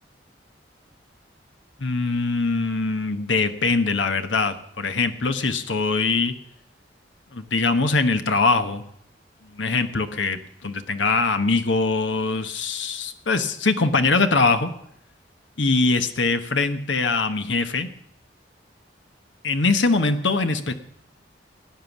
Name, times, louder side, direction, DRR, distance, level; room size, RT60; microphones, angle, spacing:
voice 1, 1.8-6.3 7.3-8.8 9.5-14.7 15.6-17.9 19.4-20.7, left 3 dB, 85° left, 8 dB, 1.2 m, -22 dB
17.5 x 9.8 x 7.3 m, 0.72 s
head